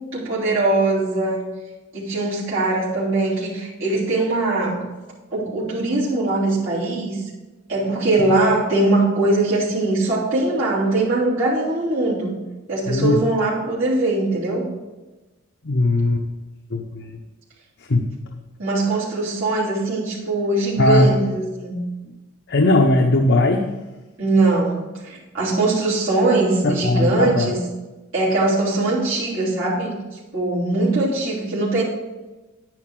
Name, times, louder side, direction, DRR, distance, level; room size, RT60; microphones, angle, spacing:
voice 1, 0.1-1.5 1.9-4.8 5.3-7.2 7.7-12.4 12.7-14.7 18.6-21.8 24.2-27.6 28.1-30.0 30.3-31.8, right 2 dB, 75° right, -9 dB, 3.3 m, -21 dB
voice 2, 12.9-13.2 15.6-16.2 16.7-17.2 17.9-18.1 20.8-21.1 22.5-23.7 26.6-27.5, left 1 dB, 60° left, 2 dB, 0.8 m, -18 dB
10.5 x 9.2 x 3.8 m, 1.1 s
head